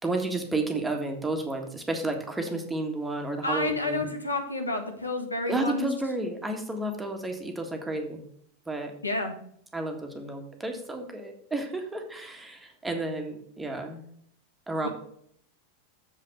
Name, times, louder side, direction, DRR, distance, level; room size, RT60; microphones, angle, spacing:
voice 1, 0.0-4.1 5.5-8.2 8.6-8.9 9.7-14.0 14.7-14.9, right 2 dB, 10° right, 3 dB, 1.7 m, -31 dB
voice 2, 3.4-5.9 9.0-9.3 14.8-14.9, left 2 dB, 80° left, 4 dB, 1.5 m, -30 dB
7.4 x 5.8 x 6.7 m, 0.66 s
figure-of-eight pair, 90°, 0 cm